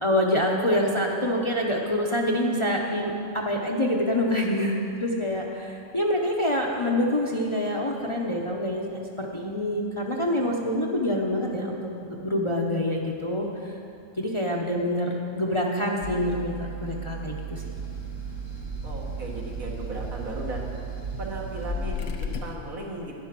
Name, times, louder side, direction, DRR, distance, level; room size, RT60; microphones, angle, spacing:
voice 1, 0.0-13.7 14.2-17.7, left 1 dB, 25° left, -1 dB, 0.8 m, -26 dB
sound 1, 16.0-22.4, right 2 dB, 75° left, 1.3 m, -35 dB
sound 2, 17.5-22.6, right 1 dB, 45° right, 1.1 m, -40 dB
voice 2, 18.8-20.7 21.2-23.1, right 2 dB, 75° right, -2 dB, 2.2 m, -36 dB
11.5 x 10.5 x 6.0 m, 2.7 s
omnidirectional pair, 1.5 m